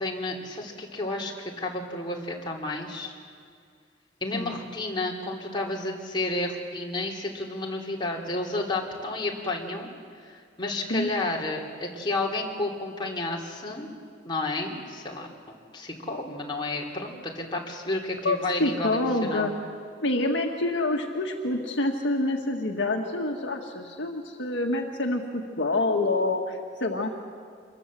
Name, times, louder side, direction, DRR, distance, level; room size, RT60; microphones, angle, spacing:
voice 1, 0.0-3.1 4.2-9.9 10.2-13.9 14.2-15.3 15.7-19.5, left 2 dB, 25° left, -2 dB, 3.2 m, -31 dB
voice 2, 18.2-19.5 20.0-27.1, left 2 dB, 65° left, 2 dB, 1.8 m, -27 dB
26.0 x 22.0 x 7.6 m, 2.1 s
head